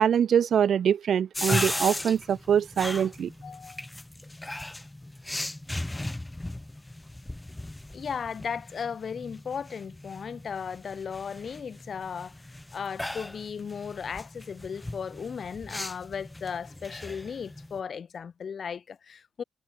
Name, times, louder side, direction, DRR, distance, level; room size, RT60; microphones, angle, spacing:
voice 1, 0.0-3.3, right 8 dB, 60° right, 0.4 m, -24 dB
sound 1, 1.3-17.8, left 1 dB, 10° left, 6.7 m, -37 dB
voice 2, 3.4-3.9 7.9-12.3 12.7-19.4, left 6 dB, 50° left, 3.3 m, -36 dB
cardioid pair, 90°, 0 cm